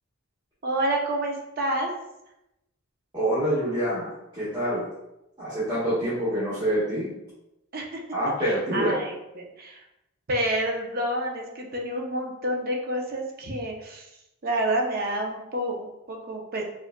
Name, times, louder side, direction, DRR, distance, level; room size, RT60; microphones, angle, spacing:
voice 1, 0.6-1.9 7.7-8.0 8.4-9.8 10.3-14.1 14.4-16.6, right 1 dB, 45° right, 0 dB, 0.6 m, -29 dB
voice 2, 3.1-4.9 5.4-7.1 8.1-9.0, right 1 dB, 20° right, -13 dB, 1.3 m, -26 dB
5.0 x 2.4 x 2.2 m, 0.89 s
head